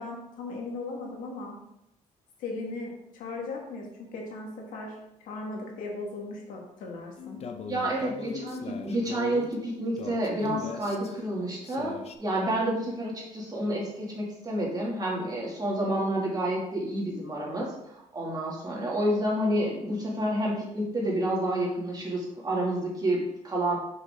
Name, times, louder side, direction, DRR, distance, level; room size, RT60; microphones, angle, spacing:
voice 1, 0.0-1.6 2.4-5.0 5.2-7.4, left 3 dB, 90° left, 0 dB, 1.6 m, -37 dB
sound 1, 7.2-12.2, left 5 dB, 50° left, 0.6 m, -40 dB
voice 2, 7.7-23.8, right 1 dB, 30° right, -3 dB, 2.3 m, -29 dB
5.7 x 5.4 x 3.7 m, 0.83 s
cardioid pair, 90°, 13 cm